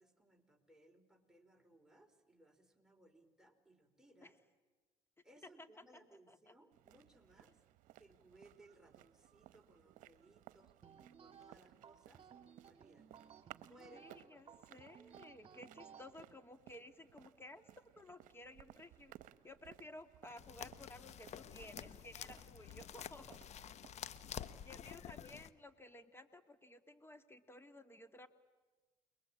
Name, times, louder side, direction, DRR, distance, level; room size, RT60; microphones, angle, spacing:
voice 1, 0.0-4.3 5.2-7.6 8.0-12.3 12.6-13.2 13.6-14.7 24.7-24.9, right 1 dB, 5° right, 3 dB, 4.2 m, -65 dB
sound 1, 6.7-25.3, right 14 dB, 70° right, 1.0 m, -62 dB
sound 2, 10.8-16.1, right 7 dB, 45° right, 1.8 m, -59 dB
voice 2, 13.9-17.6 18.0-19.1 19.4-23.4 24.7-28.3, left 1 dB, 15° left, 10 dB, 2.3 m, -55 dB
sound 3, 20.4-25.5, left 9 dB, 55° left, 1.1 m, -49 dB
29.0 x 21.0 x 8.7 m, 1.3 s
supercardioid pair, 70°, 14 cm